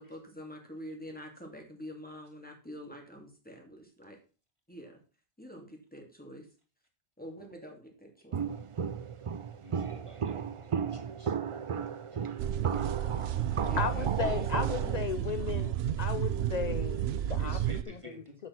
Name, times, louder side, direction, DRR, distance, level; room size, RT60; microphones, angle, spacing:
voice 1, 0.0-4.2 4.7-5.0 5.4-6.5 7.2-8.4 13.7-14.4 14.8-15.3, equal, 10° left, 2 dB, 2.6 m, -46 dB
Walk footsteps, 8.3-15.0, right 7 dB, 45° right, 0.4 m, -35 dB
voice 2, 9.6-11.3 13.3-13.4 17.4-18.4, right 1 dB, 30° right, 2 dB, 2.3 m, -49 dB
sound 1, 12.4-17.8, right 10 dB, 75° right, 0.9 m, -32 dB
voice 3, 13.8-15.7 16.0-17.6 17.9-18.1, left 7 dB, 50° left, 11 dB, 0.6 m, -35 dB
7.7 x 6.7 x 5.7 m, 0.35 s
omnidirectional pair, 1.1 m